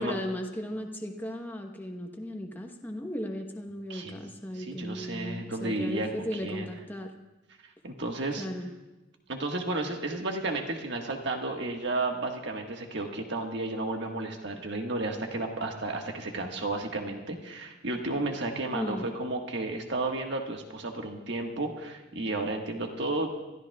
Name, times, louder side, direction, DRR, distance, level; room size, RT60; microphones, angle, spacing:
voice 1, 0.0-7.1 8.4-8.7 18.7-19.1, equal, 10° left, 2 dB, 1.1 m, -36 dB
voice 2, 4.5-6.1 6.4-6.7 7.8-8.5 9.3-23.3, right 2 dB, 65° right, 2 dB, 1.6 m, -32 dB
28.5 x 13.5 x 2.4 m, 1.1 s
head